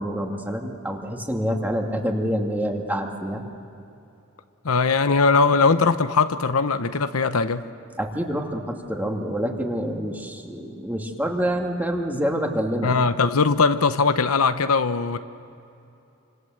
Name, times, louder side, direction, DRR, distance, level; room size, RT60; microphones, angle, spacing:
voice 1, 0.0-3.4 8.0-12.9, equal, 10° right, 2 dB, 2.3 m, -27 dB
voice 2, 4.6-7.7 12.8-15.2, left 4 dB, 75° left, 10 dB, 0.9 m, -20 dB
28.5 x 26.0 x 7.8 m, 2.8 s
head